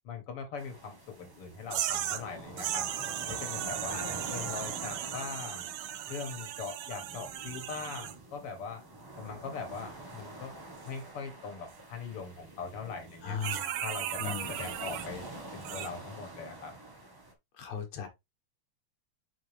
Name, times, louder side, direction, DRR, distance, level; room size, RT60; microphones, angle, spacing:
voice 1, 0.0-2.9 3.3-5.7 6.1-8.8 9.2-10.5 10.8-13.4 13.8-15.3 15.5-16.7, left 5 dB, 55° left, 2.4 m, -41 dB
sound 1, 0.6-17.3, right 1 dB, 25° right, 0.5 m, -46 dB
sound 2, 1.7-2.3 2.6-8.2 13.4-15.1 15.6-15.9, right 12 dB, 85° right, 1.3 m, -36 dB
voice 2, 13.2-13.8 14.2-14.7 17.6-18.1, left 6 dB, 70° left, 2.7 m, -38 dB
6.2 x 5.1 x 3.4 m
omnidirectional pair, 3.4 m